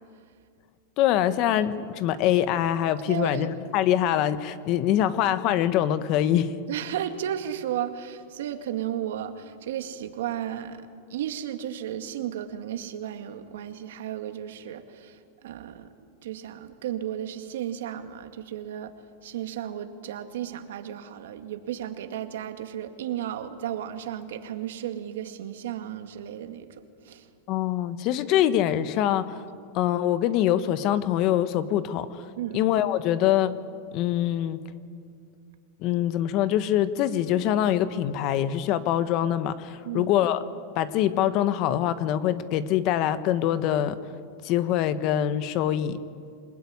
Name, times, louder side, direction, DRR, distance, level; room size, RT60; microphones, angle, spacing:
voice 1, 1.0-6.5 27.5-29.4 29.7-32.3 32.5-33.6 33.9-34.6 35.8-40.4 40.7-44.0 44.4-46.0, left 11 dB, 45° left, 12 dB, 1.3 m, -24 dB
voice 2, 3.1-3.5 6.7-10.8 11.1-15.9 16.2-18.9 19.2-26.7 27.0-27.3 32.4-32.6 39.8-40.1, right 10 dB, 80° right, 7 dB, 2.1 m, -34 dB
27.5 x 19.5 x 9.7 m, 2.2 s
supercardioid pair, 140°, 0 cm